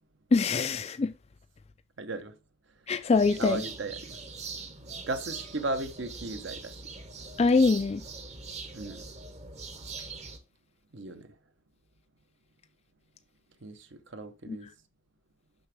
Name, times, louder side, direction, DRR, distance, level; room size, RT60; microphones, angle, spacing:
voice 1, 0.3-1.1 2.9-3.6 7.4-8.0 14.5-14.6, left 4 dB, 30° left, 0.3 m, -24 dB
voice 2, 2.0-2.4 3.4-4.2 5.0-6.8 8.7-9.1 10.9-11.3 13.6-14.7, right 2 dB, 55° right, 0.8 m, -36 dB
sound 1, 3.1-10.4, right 4 dB, 30° right, 1.0 m, -42 dB
6.4 x 5.9 x 3.4 m
head